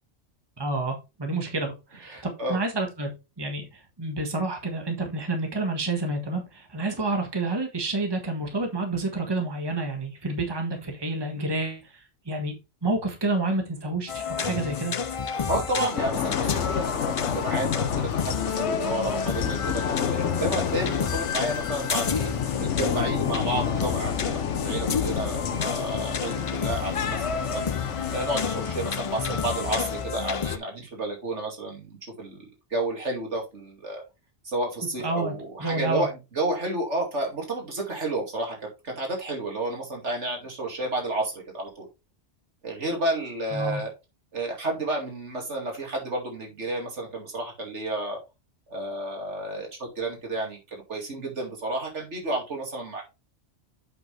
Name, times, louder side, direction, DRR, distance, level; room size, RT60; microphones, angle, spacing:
voice 1, 0.6-3.1 3.4-11.8 12.3-12.5 12.8-14.9 35.0-35.3 35.6-36.0 43.5-43.8, right 2 dB, 20° right, 3 dB, 1.5 m, -29 dB
voice 2, 2.1-2.6 15.5-22.3 22.6-27.7 28.1-32.4 32.7-34.0 34.4-38.6 38.8-41.9 42.6-43.9 44.3-48.2 48.7-49.7 50.0-50.6 50.9-53.0, right 2 dB, 75° right, 0 dB, 2.7 m, -31 dB
sound 1, 14.1-30.6, left 6 dB, 50° left, 0.4 m, -30 dB
sound 2, 16.0-30.0, left 8 dB, 80° left, 1.2 m, -30 dB
7.7 x 5.8 x 3.3 m, 0.26 s
omnidirectional pair, 1.2 m